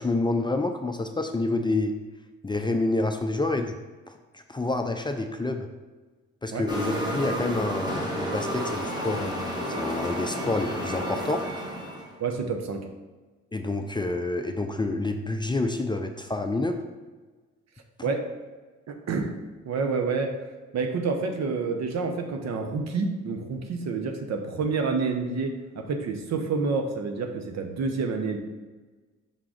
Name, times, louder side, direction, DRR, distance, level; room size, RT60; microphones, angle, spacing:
voice 1, 0.0-1.9 2.4-3.8 4.3-5.7 6.4-11.5 13.5-16.8, left 2 dB, 15° left, 5 dB, 0.4 m, -28 dB
sound 1, 6.7-12.1, equal, 15° right, 1.2 m, -31 dB
voice 2, 12.2-12.9 18.0-18.3 18.9-19.3 19.6-20.4 20.7-28.4, right 4 dB, 60° right, 4 dB, 0.9 m, -28 dB
5.9 x 3.7 x 5.0 m, 1.3 s
cardioid pair, 90°, 30 cm